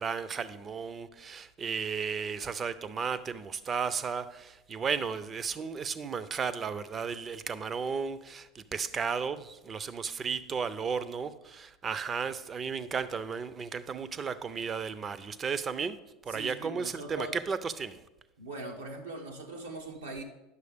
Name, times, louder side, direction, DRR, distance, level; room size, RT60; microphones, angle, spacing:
voice 1, 0.0-16.0 16.2-18.0, right 6 dB, 30° right, 0.5 m, -34 dB
voice 2, 16.3-17.4 18.4-20.2, right 2 dB, 85° right, 0.9 m, -41 dB
9.5 x 6.3 x 3.5 m
hypercardioid pair, 80°, 0 cm